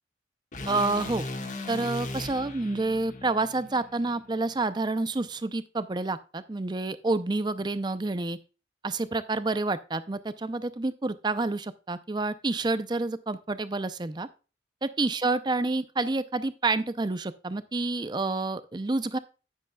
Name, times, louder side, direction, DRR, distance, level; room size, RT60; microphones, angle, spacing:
sound 1, 0.5-4.7, left 2 dB, 45° left, 1.5 m, -38 dB
voice 1, 0.7-1.2 1.7-8.4 8.8-14.3 14.8-19.2, right 3 dB, 25° right, 14 dB, 0.5 m, -28 dB
10.0 x 9.5 x 2.3 m, 0.32 s
head